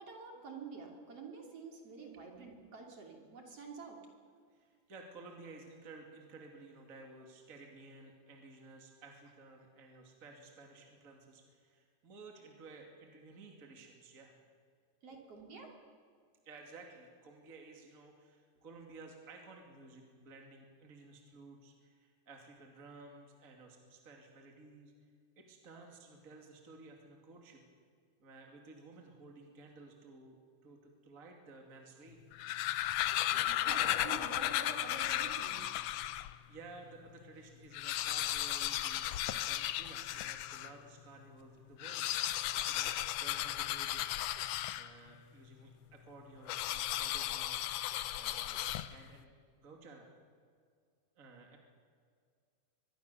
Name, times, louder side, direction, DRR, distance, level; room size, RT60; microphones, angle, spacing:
voice 1, 0.0-4.0 15.0-15.7 33.3-35.7, right 4 dB, 45° right, 1 dB, 3.7 m, -48 dB
voice 2, 4.5-14.3 15.1-15.4 16.4-24.9 25.4-27.6 28.2-32.2 36.5-42.1 42.7-42.9 43.2-44.4 44.8-47.8 48.1-50.1 51.2-51.6, right 3 dB, 25° right, 2 dB, 2.7 m, -55 dB
sound 1, 32.2-36.4 36.9-37.0 37.2-37.3 37.6-40.8 41.7-45.2 46.5-49.2, left 13 dB, 85° left, 1.5 m, -35 dB
24.5 x 21.0 x 7.0 m, 2.1 s
omnidirectional pair, 3.9 m